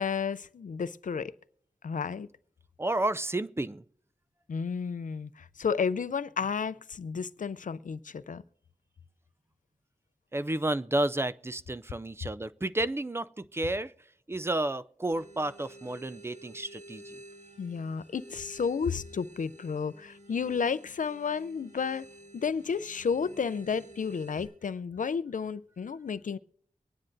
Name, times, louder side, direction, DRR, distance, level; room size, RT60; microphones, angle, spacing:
voice 1, 0.0-1.3 1.8-2.3 4.5-8.4 17.6-22.0 22.3-26.4, left 6 dB, 75° left, 0.5 m, -32 dB
voice 2, 2.8-3.8 10.3-13.9 14.3-17.2, right 1 dB, 20° right, 0.4 m, -31 dB
sound 1, 15.1-24.4, right 1 dB, 65° right, 5.7 m, -51 dB
23.5 x 9.8 x 2.6 m
wide cardioid pair, 75°, 13 cm